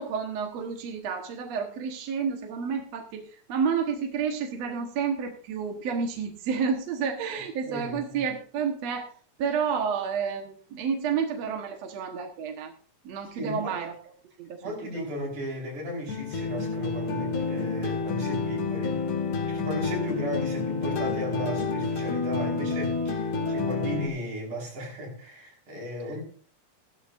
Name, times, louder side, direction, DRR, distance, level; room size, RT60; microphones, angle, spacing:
voice 1, 0.0-9.1 9.4-12.7 13.0-13.9 14.4-14.6 14.9-15.1, right 6 dB, 65° right, 2.5 m, -30 dB
voice 2, 7.7-8.2 13.4-13.8 14.6-26.2, equal, 90° right, 6.2 m, -35 dB
sound 1, 16.1-24.1, left 4 dB, 75° left, 3.3 m, -29 dB
16.5 x 13.0 x 2.6 m
omnidirectional pair, 3.4 m